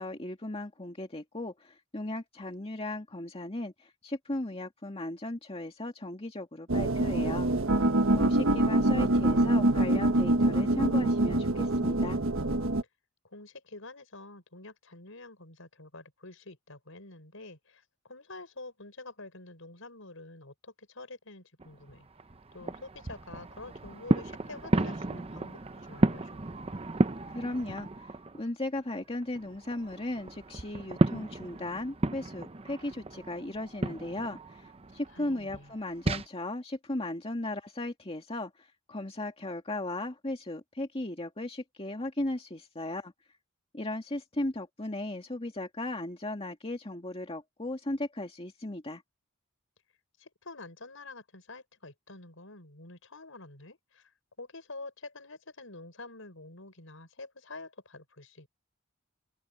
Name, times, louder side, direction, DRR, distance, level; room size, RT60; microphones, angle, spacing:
voice 1, 0.0-7.5 8.1-12.2 27.3-43.1 43.7-49.0, left 1 dB, 30° left, 2.1 m, -36 dB
sound 1, 6.7-12.8, right 1 dB, 75° right, 1.4 m, -25 dB
voice 2, 13.2-22.1 22.5-26.4 35.1-35.7 50.2-54.1 54.4-58.5, left 2 dB, 70° left, 6.7 m, -47 dB
sound 2, 21.6-28.4 28.8-36.3, right 2 dB, 30° right, 0.8 m, -33 dB
head